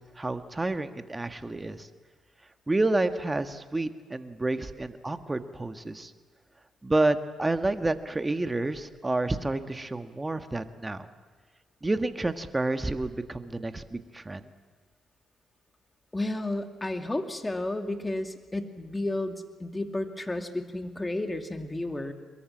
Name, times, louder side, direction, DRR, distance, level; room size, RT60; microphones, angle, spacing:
voice 1, 0.2-1.9 2.7-6.1 6.8-11.1 11.8-14.4, right 2 dB, 20° right, 9 dB, 1.6 m, -29 dB
voice 2, 16.1-22.1, left 2 dB, 20° left, 6 dB, 2.5 m, -32 dB
23.0 x 22.0 x 7.4 m, 1.5 s
hypercardioid pair, 45°, 0 cm